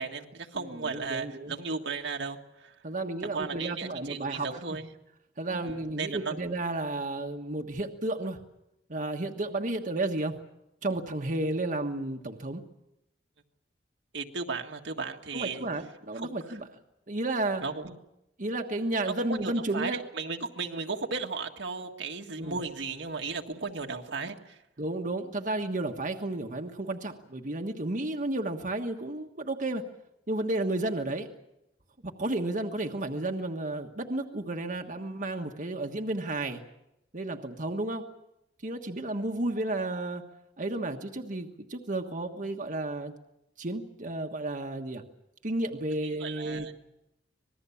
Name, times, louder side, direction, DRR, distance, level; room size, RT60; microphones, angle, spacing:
voice 1, 0.0-2.7 3.3-4.9 5.5-6.4 14.1-15.6 16.2-16.3 17.6-18.0 19.0-24.6 46.2-46.7, right 4 dB, 75° right, 3 dB, 1.7 m, -35 dB
voice 2, 0.6-1.5 2.8-4.8 5.4-8.4 8.9-10.4 10.8-12.6 15.3-16.7 17.1-17.6 18.4-20.0 22.4-22.6 24.8-29.8 30.3-31.3 32.0-36.6 37.1-38.1 38.6-40.2 40.6-43.1 43.6-45.0 45.4-46.9, right 2 dB, 45° right, 3 dB, 1.4 m, -32 dB
26.0 x 20.0 x 7.1 m, 0.87 s
head